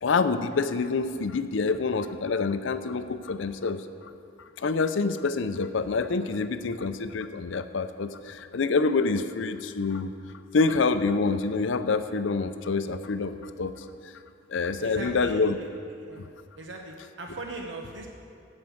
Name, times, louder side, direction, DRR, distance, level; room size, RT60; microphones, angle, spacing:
voice 1, 0.0-3.8 4.6-10.1 10.5-13.7 14.5-15.6, left 4 dB, 70° left, 10 dB, 0.5 m, -26 dB
voice 2, 14.8-15.7 16.1-16.3 16.6-18.1, right 2 dB, 65° right, 1 dB, 1.0 m, -39 dB
15.5 x 5.4 x 7.1 m, 2.4 s
head